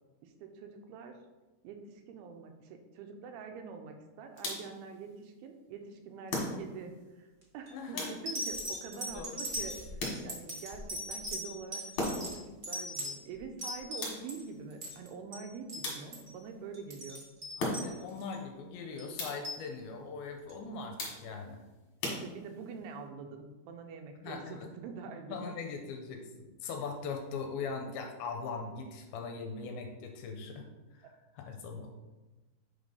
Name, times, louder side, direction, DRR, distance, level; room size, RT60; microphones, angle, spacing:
voice 1, 0.2-1.2 1.6-17.2 22.1-25.5, right 5 dB, 80° right, 5 dB, 2.5 m, -45 dB
sound 1, 4.4-4.9 6.3-6.9 8.0-8.5 10.0-10.6 12.0-12.5 14.0-14.5 15.8-16.4 17.6-18.1 19.2-19.6 21.0-21.5 22.0-22.7, left 2 dB, 50° left, 2.5 m, -38 dB
sound 2, 7.4-7.7 8.2-14.4 14.7-15.4 15.7-15.9 16.1-16.3 16.7-18.3 19.0-19.6 20.5-20.6, equal, 30° right, 0.8 m, -39 dB
voice 2, 7.7-8.1 9.1-9.4 17.6-21.6 24.2-24.7 25.3-31.9, left 4 dB, 80° left, 3 dB, 2.4 m, -41 dB
8.0 x 3.5 x 5.4 m, 1.2 s
omnidirectional pair, 4.6 m